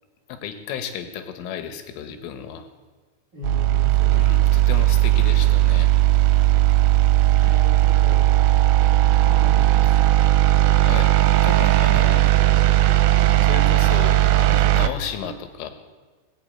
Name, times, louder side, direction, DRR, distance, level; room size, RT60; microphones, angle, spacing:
voice 1, 0.3-2.7 4.1-5.9 7.3-7.6 10.8-11.1 11.4-12.3 13.4-15.7, left 8 dB, 80° left, 7 dB, 3.6 m, -33 dB
voice 2, 3.3-4.5 7.4-8.4 9.2-10.5 11.8-12.2, equal, 60° right, -3 dB, 1.1 m, -36 dB
sound 1, 3.4-14.9, right 15 dB, 90° right, 3.3 m, -17 dB
20.0 x 7.3 x 8.7 m, 1.4 s
omnidirectional pair, 5.8 m